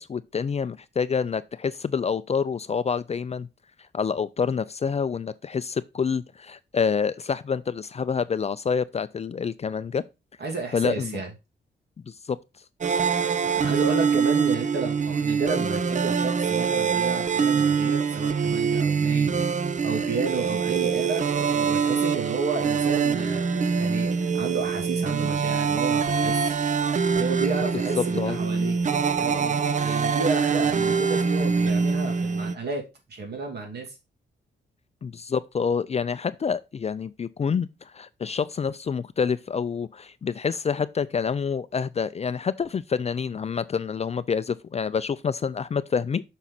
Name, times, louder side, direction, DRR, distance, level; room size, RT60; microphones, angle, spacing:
voice 1, 0.0-3.5 3.9-10.0 10.7-11.2 12.1-12.4 28.0-28.4 35.0-46.2, left 6 dB, 35° left, 0.4 m, -27 dB
voice 2, 10.4-11.3 13.5-26.6 27.2-28.8 29.2-32.8 33.1-34.0, right 4 dB, 60° right, 2.7 m, -32 dB
sound 1, 12.8-32.6, right 6 dB, 40° right, 0.6 m, -24 dB
6.1 x 5.7 x 4.0 m
cardioid pair, 100°, 19 cm